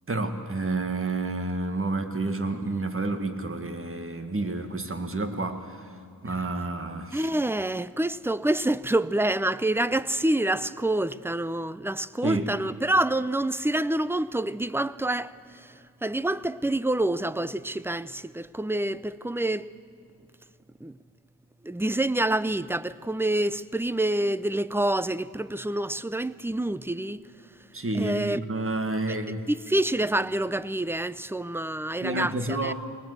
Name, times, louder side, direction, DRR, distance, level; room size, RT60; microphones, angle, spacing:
voice 1, 0.1-5.9 6.2-7.3 12.2-12.5 27.7-29.4 32.0-32.7, right 2 dB, 35° right, 1.9 m, -30 dB
voice 2, 7.1-15.7 16.0-19.7 20.8-21.0 21.6-27.3 27.9-28.4 29.5-32.7, right 1 dB, 5° right, 0.5 m, -27 dB
22.0 x 19.5 x 8.0 m
wide cardioid pair, 75°, 36 cm